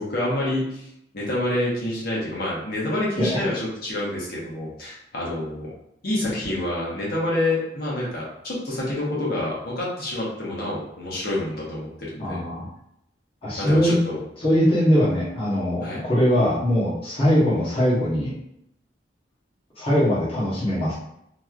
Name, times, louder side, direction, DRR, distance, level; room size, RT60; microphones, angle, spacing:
voice 1, 0.0-5.7 6.0-12.4 13.6-14.2 15.8-16.0, left 1 dB, 55° left, -5 dB, 1.1 m, -27 dB
voice 2, 12.2-12.7 13.4-13.9 14.4-18.3 19.8-20.9, equal, 30° left, -9 dB, 1.1 m, -21 dB
3.1 x 2.7 x 2.4 m, 0.77 s
head